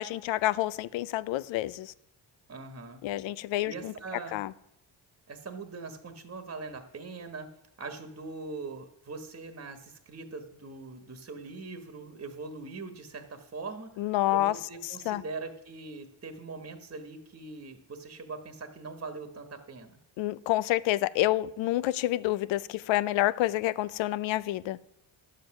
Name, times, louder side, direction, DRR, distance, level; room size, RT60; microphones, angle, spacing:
voice 1, 0.0-1.9 3.0-3.9 4.3-4.5 14.0-14.5 15.1-15.2 20.2-24.8, left 15 dB, 90° left, 0.6 m, -28 dB
voice 2, 2.5-3.0 3.7-4.4 5.3-13.9 14.3-20.0, right 3 dB, 30° right, 1.3 m, -42 dB
11.0 x 7.6 x 5.9 m
cardioid pair, 75°, 44 cm